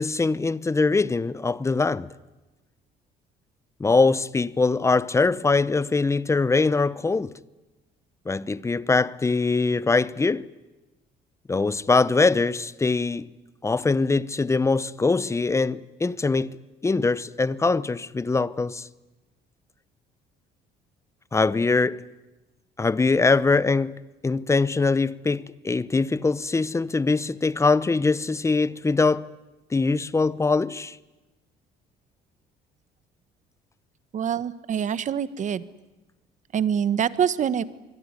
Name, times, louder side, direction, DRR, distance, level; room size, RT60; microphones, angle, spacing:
voice 1, 0.0-2.1 3.8-7.3 8.3-10.5 11.5-13.3 13.6-16.6 16.8-18.9 21.3-22.0 22.8-29.3 29.7-31.0, left 3 dB, 15° left, 0.9 m, -22 dB
voice 2, 34.1-35.6 36.5-37.6, right 8 dB, 45° right, 1.4 m, -25 dB
25.5 x 22.0 x 9.8 m
cardioid pair, 110°, 17 cm